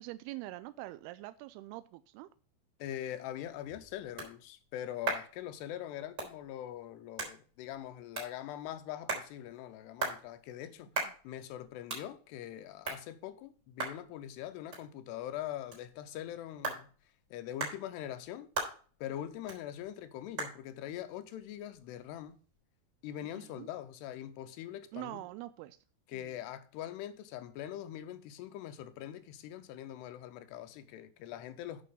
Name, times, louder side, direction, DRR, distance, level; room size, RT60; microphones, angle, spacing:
voice 1, 0.0-2.3 23.3-23.7 24.9-25.8 26.1-26.4, right 17 dB, 85° right, 2.3 m, -44 dB
voice 2, 2.8-10.9 11.2-16.9 17.3-18.5 19.0-22.4 23.0-25.2 26.1-31.8, left 11 dB, 80° left, 2.6 m, -42 dB
sound 1, 3.3-22.6, right 3 dB, 25° right, 3.6 m, -43 dB
8.5 x 6.1 x 5.4 m
omnidirectional pair, 5.0 m